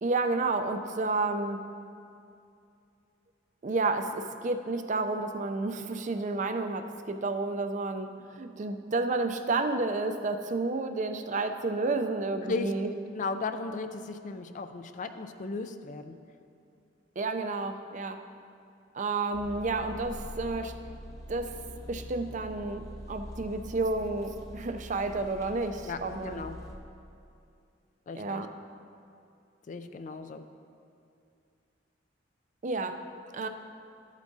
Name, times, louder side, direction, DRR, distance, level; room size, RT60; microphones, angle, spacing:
voice 1, 0.0-1.6 3.6-12.9 17.2-18.2 18.9-20.7 21.3-21.5 21.9-26.4 28.1-28.5 32.6-33.0 33.3-33.5, right 3 dB, 40° right, 8 dB, 0.5 m, -31 dB
voice 2, 13.1-16.1 25.8-26.5 28.1-28.4 29.7-30.4, left 3 dB, 40° left, 8 dB, 0.4 m, -36 dB
sound 1, 19.3-26.8, left 1 dB, 15° left, 0.8 m, -44 dB
13.0 x 8.1 x 2.7 m, 2.5 s
head